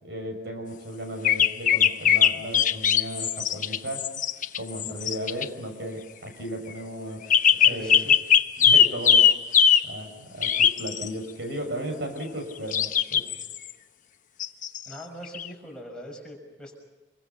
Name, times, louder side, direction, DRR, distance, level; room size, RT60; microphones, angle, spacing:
voice 1, 0.0-4.1 4.5-7.2 7.6-8.0 8.6-9.6 9.8-13.2, equal, 70° right, 4 dB, 6.5 m, -35 dB
sound 1, 1.2-5.4 7.3-9.9 10.4-11.1 12.7-13.6 14.4-14.8 15.2-15.5, left 8 dB, 50° left, 1.0 m, -20 dB
voice 2, 7.6-8.1 13.1-13.3 14.9-16.7, equal, 5° left, -1 dB, 6.3 m, -42 dB
27.0 x 24.0 x 5.8 m, 1.2 s
head